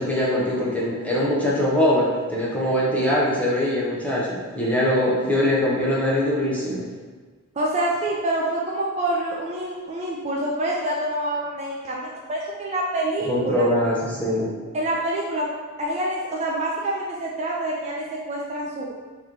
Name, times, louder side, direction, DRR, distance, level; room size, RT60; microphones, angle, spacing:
voice 1, 0.0-6.8 13.3-14.5, left 1 dB, 5° left, -7 dB, 0.7 m, -22 dB
voice 2, 7.6-13.6 14.7-15.5 15.8-18.9, right 1 dB, 30° right, -3 dB, 0.4 m, -26 dB
3.0 x 2.7 x 3.6 m, 1.4 s
head